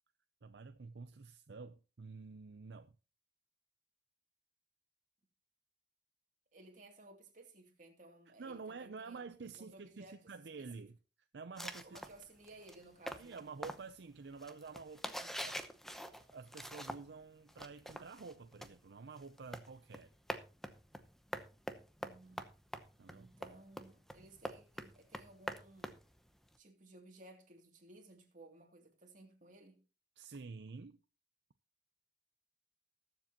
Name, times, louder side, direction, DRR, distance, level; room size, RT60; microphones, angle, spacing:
voice 1, 0.4-2.9 8.4-11.0 11.3-12.0 13.2-15.6 16.3-20.1 23.0-23.3 30.2-31.0, right 4 dB, 70° right, 0.6 m, -49 dB
voice 2, 6.5-9.2 9.5-10.9 11.8-13.5 22.0-22.5 23.1-26.1 26.6-29.8, right 2 dB, 45° right, 2.7 m, -58 dB
sound 1, 11.6-17.2 17.5-26.6, equal, ahead, 0.8 m, -46 dB
20.5 x 7.5 x 2.9 m
head